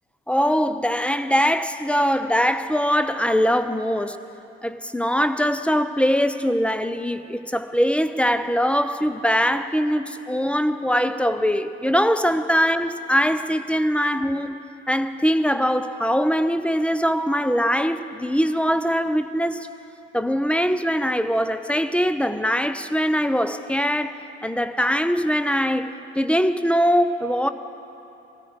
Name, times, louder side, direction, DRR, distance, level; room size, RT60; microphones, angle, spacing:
voice 1, 0.3-4.2 4.6-14.6 14.9-19.7 20.1-27.5, equal, 5° left, 0.6 m, -22 dB
17.0 x 13.5 x 5.0 m
figure-of-eight pair, 45°, 33 cm